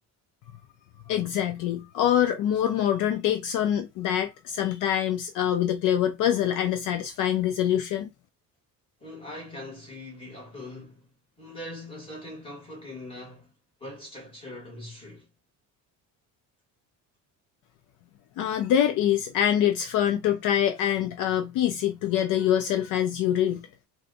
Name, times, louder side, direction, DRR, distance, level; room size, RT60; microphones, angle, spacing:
voice 1, 1.1-8.1 18.4-23.7, left 10 dB, 65° left, 0.5 m, -25 dB
voice 2, 9.0-13.5 13.8-15.3, left 1 dB, 15° left, 1.4 m, -42 dB
2.5 x 2.3 x 3.9 m
cardioid pair, 175°, 35 cm